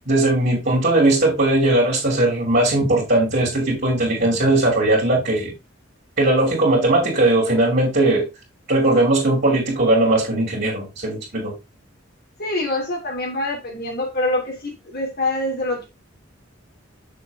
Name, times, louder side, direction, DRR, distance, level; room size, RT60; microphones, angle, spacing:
voice 1, 0.1-5.5 6.2-8.3 8.7-11.5, right 2 dB, 50° right, 2.9 m, -18 dB
voice 2, 12.4-15.9, left 2 dB, 55° left, 3.0 m, -25 dB
6.9 x 6.3 x 3.6 m
head